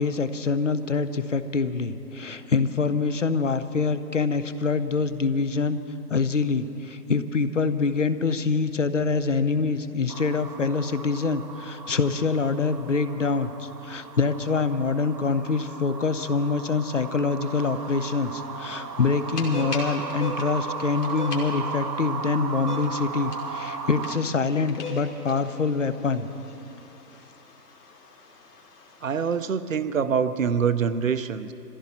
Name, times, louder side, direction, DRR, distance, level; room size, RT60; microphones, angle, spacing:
voice 1, 0.0-5.8 6.1-26.3, left 4 dB, 50° left, 12 dB, 0.6 m, -25 dB
sound 1, 10.1-24.2, right 5 dB, 90° right, 1.4 m, -36 dB
sound 2, 17.4-29.4, left 3 dB, 65° left, 3.0 m, -42 dB
voice 2, 29.0-31.5, right 6 dB, 55° right, 12 dB, 0.7 m, -25 dB
22.5 x 15.0 x 4.2 m, 3.0 s
hypercardioid pair, 175°, 50 cm